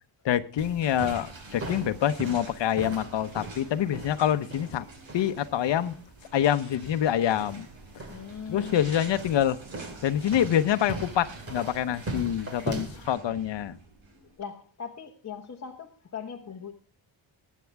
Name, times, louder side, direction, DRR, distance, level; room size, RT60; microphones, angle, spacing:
voice 1, 0.2-4.9 5.1-5.9 6.3-7.7 8.5-9.6 10.0-13.8, left 10 dB, 65° left, 11 dB, 1.0 m, -26 dB
sound 1, 0.6-13.1, right 2 dB, 30° right, 2.2 m, -40 dB
sound 2, 0.8-14.4, right 3 dB, 65° right, 5.0 m, -48 dB
voice 2, 8.1-8.8 14.4-16.7, left 7 dB, 35° left, 1 dB, 1.2 m, -40 dB
21.5 x 8.6 x 3.5 m, 0.39 s
wide cardioid pair, 160°, 48 cm